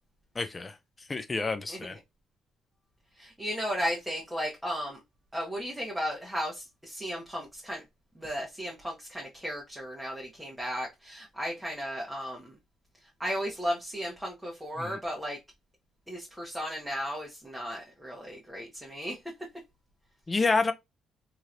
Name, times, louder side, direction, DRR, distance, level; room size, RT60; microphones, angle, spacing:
voice 1, 0.4-0.8 1.1-2.0 14.8-15.0 20.3-20.7, left 3 dB, 25° left, 0.4 m, -28 dB
voice 2, 1.7-2.0 3.2-5.0 5.3-7.8 8.1-12.6 13.2-15.4 16.1-19.2, equal, 5° right, 0.9 m, -35 dB
3.1 x 2.8 x 2.5 m
cardioid pair, 90°, 0 cm